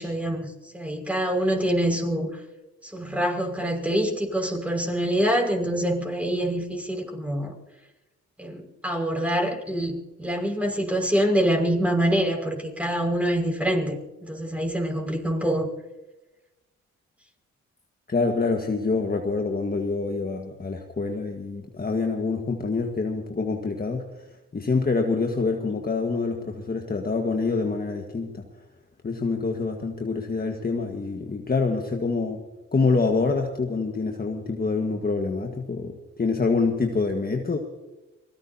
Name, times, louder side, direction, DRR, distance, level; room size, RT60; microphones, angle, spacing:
voice 1, 0.0-2.4 2.8-7.5 8.4-15.7, right 1 dB, 5° right, 1 dB, 5.8 m, -25 dB
voice 2, 18.1-24.0 24.5-28.4 29.0-32.4 32.7-37.6, left 4 dB, 30° left, 3 dB, 1.7 m, -26 dB
24.5 x 18.0 x 2.9 m, 1.0 s
supercardioid pair, 55°, 31 cm